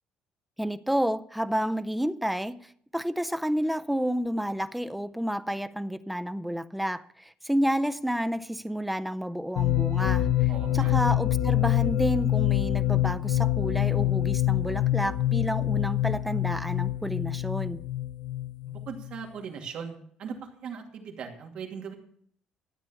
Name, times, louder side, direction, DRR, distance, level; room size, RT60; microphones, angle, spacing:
voice 1, 0.6-2.6 2.9-17.8, equal, ahead, 0.4 m, -30 dB
sound 1, 9.6-19.2, left 14 dB, 75° left, 0.5 m, -26 dB
voice 2, 10.5-11.0 18.7-22.0, right 6 dB, 45° right, 2.5 m, -39 dB
13.0 x 8.2 x 6.9 m
cardioid pair, 175°, 2 cm